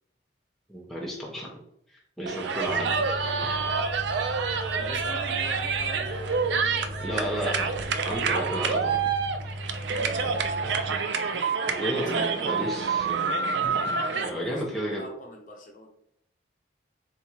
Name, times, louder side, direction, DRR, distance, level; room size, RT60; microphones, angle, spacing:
voice 1, 0.7-1.6 1.9-3.0 3.4-3.5 7.0-7.7 8.0-9.1 11.7-13.2 13.6-13.8 14.2-15.0, equal, ahead, -4 dB, 0.7 m, -32 dB
sound 1, 2.3-14.3, right 5 dB, 65° right, 0.4 m, -28 dB
sound 2, 2.6-11.0, left 1 dB, 85° left, 0.8 m, -38 dB
voice 2, 3.8-7.3 9.8-10.8 11.8-12.7 14.1-15.9, left 1 dB, 45° left, 0 dB, 0.8 m, -43 dB
3.6 x 2.8 x 4.4 m, 0.72 s
head